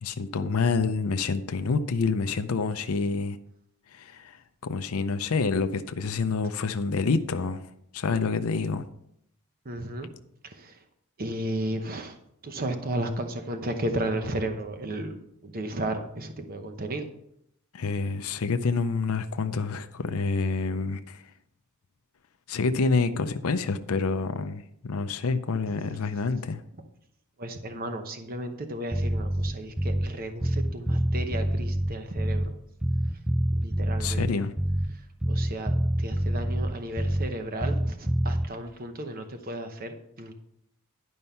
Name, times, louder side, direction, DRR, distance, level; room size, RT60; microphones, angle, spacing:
voice 1, 0.0-3.4 3.9-7.6 7.9-8.9 17.7-21.2 22.5-26.6 34.0-34.5, left 4 dB, 70° left, 0.5 m, -27 dB
voice 2, 9.6-10.1 10.4-10.8 11.2-12.2 12.4-17.1 27.4-32.5 33.6-34.3 35.3-40.3, right 1 dB, 40° right, 0.9 m, -34 dB
Bass guitar, 28.9-30.2 30.4-32.6 32.8-35.0 35.2-37.4 37.6-38.5, equal, 5° right, 0.3 m, -26 dB
11.0 x 5.4 x 5.6 m
head